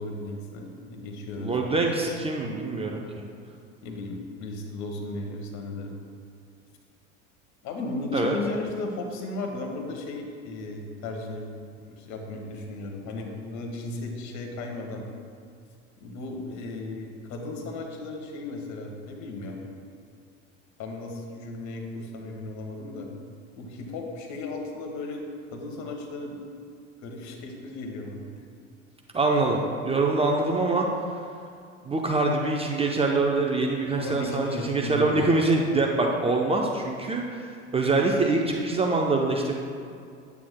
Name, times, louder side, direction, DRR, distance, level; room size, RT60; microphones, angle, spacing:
voice 1, 0.0-1.9 3.8-5.9 7.6-11.5 11.8-15.0 16.0-19.6 20.8-23.1 23.6-25.3 25.5-26.4 27.0-28.4 34.0-35.3, left 2 dB, 45° left, 2 dB, 1.3 m, -35 dB
voice 2, 1.4-3.2 8.1-8.4 29.1-30.9 31.8-39.6, right 3 dB, 15° right, 0 dB, 0.6 m, -24 dB
9.3 x 8.2 x 2.2 m, 2.3 s
hypercardioid pair, 75°, 38 cm